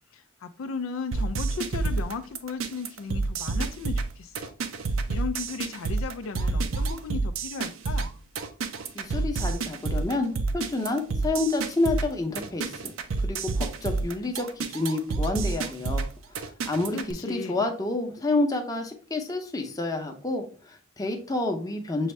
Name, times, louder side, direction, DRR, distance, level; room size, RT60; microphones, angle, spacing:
voice 1, 0.1-4.6 5.1-8.1 16.9-17.7, left 4 dB, 75° left, 8 dB, 0.4 m, -36 dB
sound 1, 1.1-17.1, right 3 dB, 85° right, 0.5 m, -29 dB
voice 2, 8.9-12.9 13.2-16.0 16.7-22.1, left 2 dB, 20° left, 3 dB, 0.7 m, -29 dB
6.3 x 2.6 x 3.2 m, 0.39 s
head